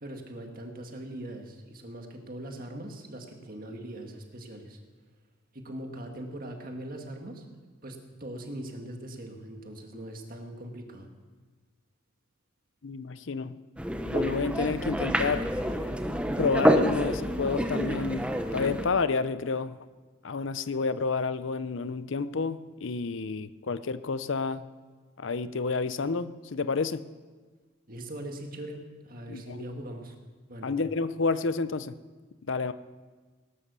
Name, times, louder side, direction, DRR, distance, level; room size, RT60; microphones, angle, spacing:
voice 1, 0.0-4.8 5.5-7.5 7.8-11.1 27.9-28.8 29.0-30.2 30.5-30.7, right 1 dB, 45° right, 3 dB, 1.9 m, -41 dB
voice 2, 12.8-13.6 14.1-15.5 16.4-19.8 20.2-24.7 25.2-27.0 29.3-29.6 30.6-32.0 32.5-32.7, left 4 dB, 65° left, 14 dB, 0.6 m, -30 dB
sound 1, 13.8-18.9, equal, 5° right, 0.8 m, -28 dB
18.5 x 11.0 x 6.9 m, 1.4 s
head